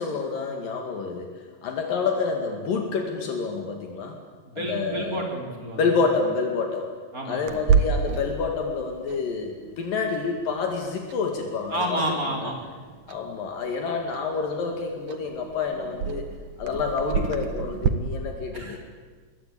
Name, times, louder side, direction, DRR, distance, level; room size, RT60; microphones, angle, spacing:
voice 1, 0.0-4.2 4.6-5.2 5.8-6.9 7.3-12.0 12.4-12.5 13.1-16.3 16.6-18.8, left 4 dB, 75° left, 3 dB, 4.1 m, -28 dB
voice 2, 4.5-5.9 7.1-7.5 11.7-12.6 18.5-18.8, right 1 dB, 25° right, 1 dB, 5.1 m, -30 dB
Clock, 7.5-17.9, right 6 dB, 65° right, 2.8 m, -30 dB
27.5 x 22.0 x 8.9 m, 1.5 s
omnidirectional pair, 4.0 m